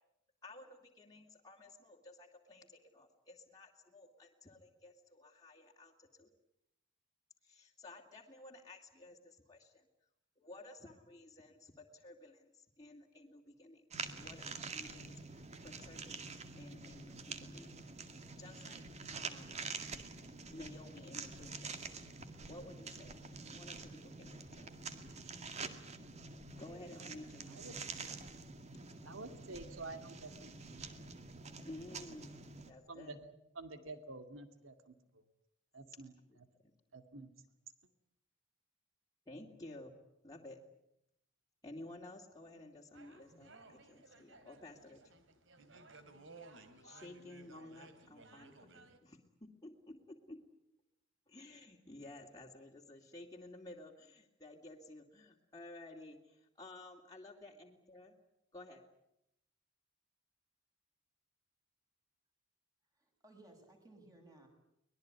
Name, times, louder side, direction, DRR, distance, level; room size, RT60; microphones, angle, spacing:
voice 1, 0.4-6.3 7.4-9.9 10.4-17.7 18.0-18.1 18.4-18.8 19.1-19.6 20.5-21.9 22.5-24.7 26.6-28.3 31.6-33.2 36.3-36.7 39.3-39.9 40.2-40.6 41.6-45.0 46.6-50.4 51.3-58.1 58.5-58.8, left 2 dB, 20° left, -2 dB, 2.6 m, -54 dB
sound 1, 13.9-32.7, right 4 dB, 35° right, 2.1 m, -47 dB
voice 2, 29.0-30.9 32.9-35.2 35.7-36.1 36.9-37.3, right 3 dB, 85° right, 8 dB, 2.4 m, -49 dB
sound 2, 42.9-49.0, right 3 dB, 70° right, 3.0 m, -58 dB
voice 3, 63.0-64.5, right 2 dB, 20° right, 3 dB, 6.9 m, -60 dB
24.0 x 20.5 x 9.5 m, 0.81 s
head